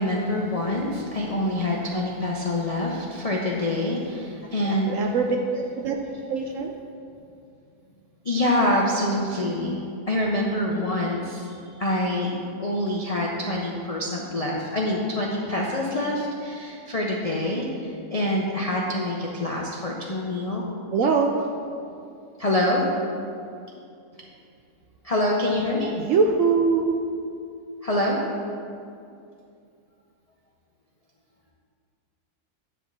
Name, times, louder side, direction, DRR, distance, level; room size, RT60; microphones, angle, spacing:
voice 1, 0.0-5.1 5.5-5.6 6.0-6.4 8.2-20.6 22.4-22.8 25.0-25.9 27.8-28.2, left 1 dB, 65° left, -3 dB, 0.3 m, -26 dB
voice 2, 4.9-5.4 5.8-6.0 6.3-6.7 20.9-21.3 26.0-27.0, right 5 dB, 70° right, 2 dB, 0.7 m, -22 dB
10.0 x 3.5 x 7.1 m, 2.5 s
omnidirectional pair, 1.8 m